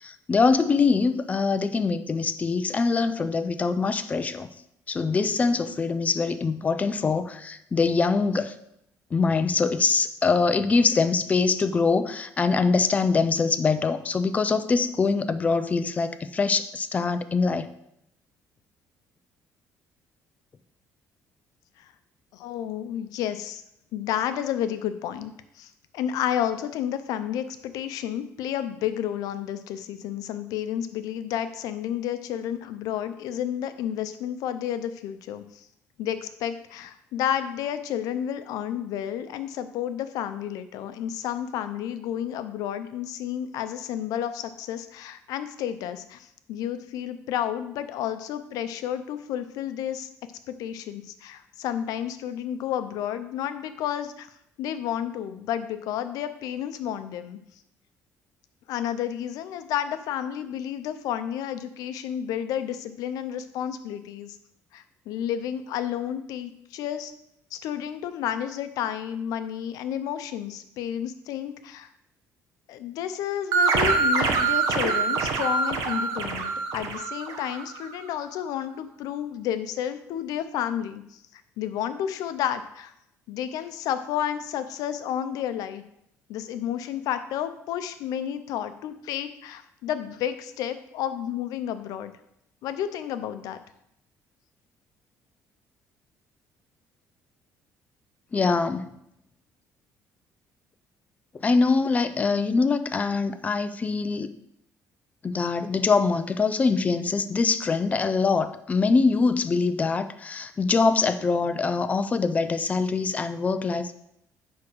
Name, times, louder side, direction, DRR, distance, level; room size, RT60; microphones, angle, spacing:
voice 1, 0.0-4.5 4.9-8.5 9.1-17.7 98.3-98.9 101.4-104.3 105.2-113.9, left 4 dB, 25° left, 11 dB, 0.5 m, -23 dB
voice 2, 22.3-23.6 23.9-35.7 36.0-50.1 50.5-54.3 54.6-57.4 58.7-64.4 64.7-67.1 67.5-71.9 72.7-82.9 83.3-85.8 86.3-92.1 92.6-93.6, left 10 dB, 85° left, 10 dB, 0.7 m, -31 dB
sound 1, 73.5-77.8, right 4 dB, 70° right, 1.2 m, -25 dB
9.6 x 3.7 x 6.2 m, 0.78 s
cardioid pair, 145°, 6 cm